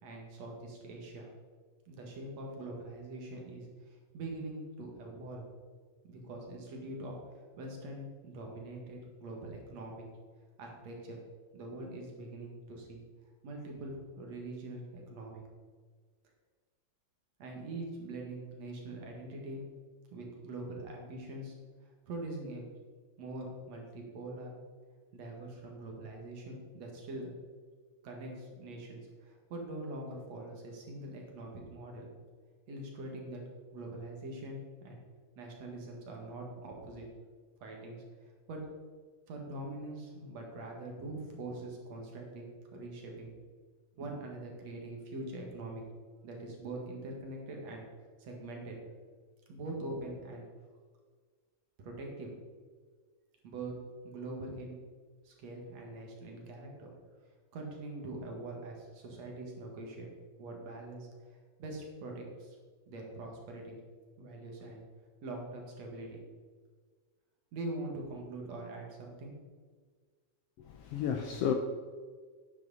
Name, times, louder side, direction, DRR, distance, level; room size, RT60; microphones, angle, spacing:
voice 1, 0.0-1.3 1.9-5.5 6.1-7.2 7.5-10.0 10.6-11.2 11.5-13.0 13.4-15.5 17.4-19.7 20.1-21.5 21.8-22.6 23.2-24.6 25.1-27.3 28.0-32.1 32.7-33.4 33.7-35.0 35.4-37.1 37.6-38.6 39.3-43.3 44.0-45.8 46.2-47.8 48.2-48.8 49.5-50.5 51.8-52.3 53.4-53.7 54.0-54.8 55.2-56.9 57.5-60.1 60.4-62.6 62.9-63.8 64.2-64.8 65.2-66.2 67.5-69.3, right 2 dB, 65° right, 0 dB, 3.0 m, -43 dB
voice 2, 70.7-71.5, left 8 dB, 80° left, 5 dB, 1.4 m, -32 dB
11.0 x 9.0 x 4.1 m, 1.6 s
omnidirectional pair, 3.3 m